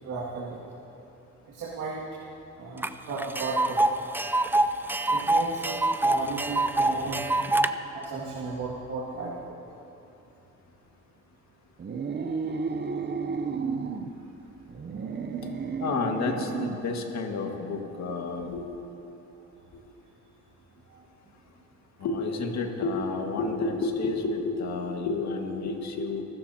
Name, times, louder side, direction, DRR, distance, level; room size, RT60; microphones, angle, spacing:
voice 1, 0.0-0.6 1.5-2.1 2.6-4.0 5.0-7.4 7.9-9.6 20.9-21.0, right 4 dB, 80° right, -6 dB, 2.3 m, -35 dB
Tick, 2.8-2.9 3.2-7.7, right 2 dB, 5° right, 0.5 m, -25 dB
sound 1, 11.8-14.1 14.7-16.9, right 5 dB, 35° right, 0.8 m, -32 dB
voice 2, 15.8-18.6 22.0-26.2, left 3 dB, 65° left, 3 dB, 1.9 m, -30 dB
24.5 x 13.5 x 2.9 m, 2.9 s
cardioid pair, 90°, 30 cm